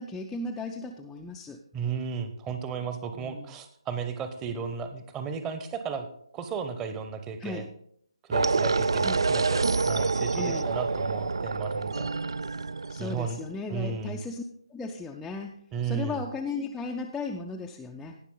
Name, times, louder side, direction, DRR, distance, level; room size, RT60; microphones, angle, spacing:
voice 1, 0.0-1.6 3.1-3.5 7.4-7.7 9.0-9.2 10.4-10.7 12.9-14.4 14.7-18.2, left 3 dB, 5° left, -1 dB, 0.4 m, -36 dB
voice 2, 1.7-6.1 6.3-7.6 8.3-12.1 13.0-13.4 13.7-14.2 15.7-16.2, right 6 dB, 10° right, 8 dB, 0.8 m, -34 dB
sound 1, 8.3-13.5, right 4 dB, 60° right, 0.3 m, -27 dB
18.0 x 6.1 x 3.8 m, 0.67 s
figure-of-eight pair, 145°, 3 cm